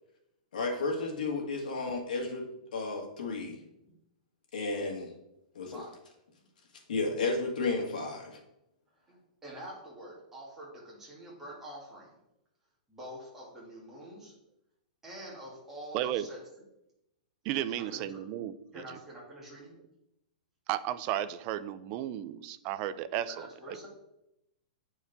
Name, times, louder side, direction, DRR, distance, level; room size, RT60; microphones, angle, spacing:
voice 1, 0.5-2.4 2.7-3.6 4.5-5.1 5.6-5.8 6.9-8.4, left 3 dB, 85° left, 0 dB, 1.8 m, -32 dB
voice 2, 5.6-6.0 8.2-8.3 9.1-12.1 12.9-14.3 15.0-16.4 17.7-18.2 18.7-19.8 23.3-23.9, right 1 dB, 5° right, -6 dB, 2.2 m, -46 dB
voice 3, 15.9-16.3 17.4-19.0 20.7-23.9, right 12 dB, 30° right, 14 dB, 0.3 m, -34 dB
8.1 x 4.5 x 3.5 m, 0.85 s
hypercardioid pair, 160°, 4 cm